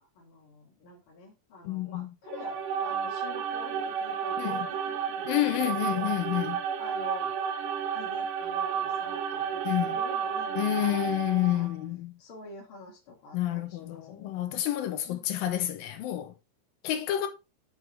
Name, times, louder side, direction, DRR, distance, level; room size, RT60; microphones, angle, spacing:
voice 1, 0.0-6.1 6.8-7.3 7.9-11.7 12.2-14.5 15.1-15.2, left 3 dB, 40° left, 2.7 m, -47 dB
voice 2, 1.6-2.1 4.4-4.6 5.3-6.6 9.7-10.0 10.6-12.1 13.3-16.3 16.8-17.3, left 13 dB, 90° left, 2.6 m, -29 dB
sound 1, 2.3-11.7, right 7 dB, 75° right, 2.2 m, -32 dB
6.7 x 6.2 x 3.2 m
omnidirectional pair, 3.9 m